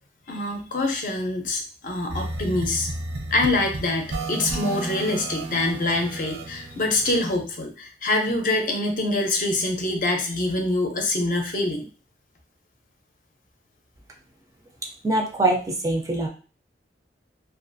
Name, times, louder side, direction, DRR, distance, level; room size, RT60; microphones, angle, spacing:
voice 1, 0.3-2.9 3.3-11.9, left 2 dB, 50° left, 3 dB, 0.5 m, -25 dB
sound 1, 2.1-7.3, right 2 dB, 85° right, 0.6 m, -33 dB
voice 2, 15.0-16.3, right 2 dB, 20° right, 1 dB, 0.4 m, -23 dB
2.4 x 2.3 x 2.5 m, 0.37 s
head